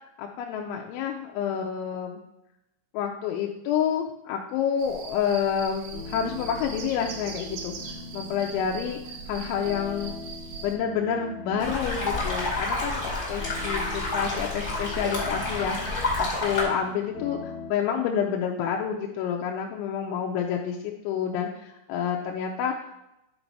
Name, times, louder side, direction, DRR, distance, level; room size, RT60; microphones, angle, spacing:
voice 1, 0.2-2.2 2.9-7.7 8.1-10.2 10.6-22.7, left 8 dB, 90° left, 1 dB, 3.0 m, -29 dB
sound 1, 4.8-10.8, right 6 dB, 75° right, 2.6 m, -41 dB
sound 2, 5.9-17.7, left 4 dB, 75° left, 2.7 m, -42 dB
sound 3, 11.6-16.6, left 2 dB, 45° left, 1.1 m, -29 dB
9.8 x 4.0 x 4.6 m, 0.88 s
omnidirectional pair, 5.3 m